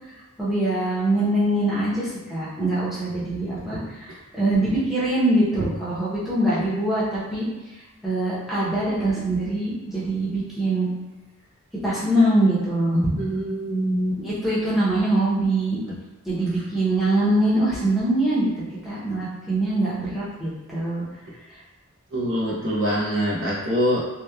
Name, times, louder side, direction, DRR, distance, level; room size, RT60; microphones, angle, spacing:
voice 1, 0.4-3.8 4.3-7.4 8.0-10.9 11.8-13.0 14.2-15.8 16.2-18.5 18.8-21.0, right 1 dB, ahead, -10 dB, 0.7 m, -23 dB
voice 2, 12.9-14.2 22.1-24.0, equal, 60° right, -5 dB, 0.8 m, -24 dB
2.9 x 2.2 x 2.3 m, 1.1 s
head